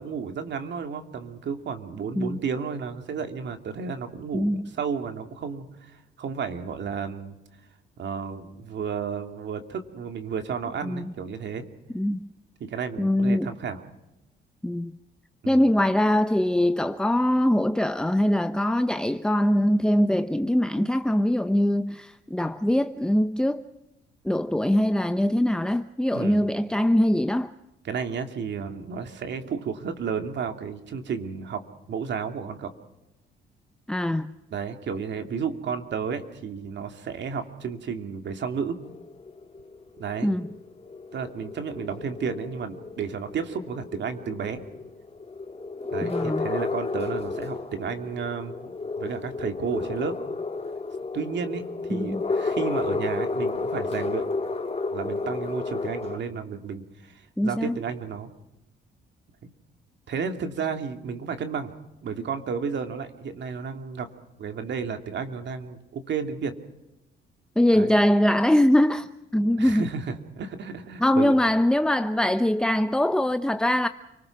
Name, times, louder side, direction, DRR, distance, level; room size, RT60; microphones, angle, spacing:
voice 1, 0.0-7.4 8.0-11.6 12.6-13.8 15.4-15.7 26.1-26.5 27.8-31.6 31.9-32.7 34.5-38.8 40.0-40.3 41.1-44.6 45.9-50.2 51.1-54.3 54.9-58.3 59.4-59.5 60.1-61.7 62.0-64.1 64.4-66.5 67.7-68.0 69.6-71.4, right 6 dB, 65° right, 2.6 m, -32 dB
voice 2, 4.3-4.7 10.9-11.1 11.9-12.3 13.0-13.5 14.6-14.9 15.5-23.6 24.2-27.5 33.9-34.3 40.2-40.5 46.0-46.5 51.9-52.2 57.4-57.7 67.6-69.1 69.3-69.8 71.0-73.9, left 1 dB, 5° left, 0.7 m, -22 dB
sound 1, 38.8-56.2, left 3 dB, 30° left, 2.9 m, -32 dB
29.0 x 19.5 x 6.0 m
cardioid pair, 90°, 20 cm